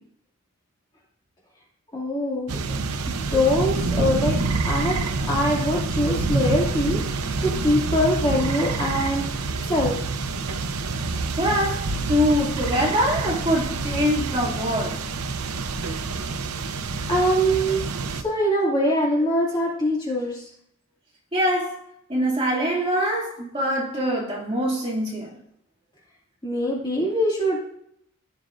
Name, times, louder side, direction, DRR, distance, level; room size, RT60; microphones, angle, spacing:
voice 1, 1.9-2.5 3.1-4.4 4.7-5.0 5.3-9.3 9.7-10.0 17.1-17.8 18.2-20.4 26.4-27.6, equal, 20° left, 2.4 m, -23 dB
sound 1, 2.5-18.2, right 3 dB, 85° right, 0.7 m, -27 dB
voice 2, 11.4-15.0 21.3-21.8 22.1-25.4, equal, 25° right, 2.6 m, -24 dB
16.0 x 6.1 x 2.6 m
head